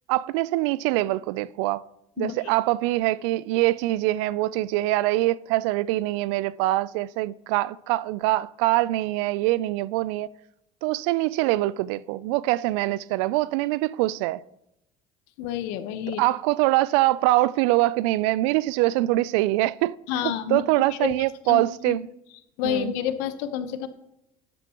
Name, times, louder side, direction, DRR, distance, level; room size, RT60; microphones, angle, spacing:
voice 1, 0.1-1.8 2.2-10.3 10.8-14.4 16.2-19.9 20.2-22.1 22.6-22.9, right 17 dB, 80° right, 0.4 m, -24 dB
voice 2, 15.4-16.2 20.1-20.6 20.9-21.1 21.5-22.0 22.6-23.9, left 10 dB, 80° left, 1.0 m, -29 dB
12.5 x 10.5 x 3.0 m
supercardioid pair, 75°, 16 cm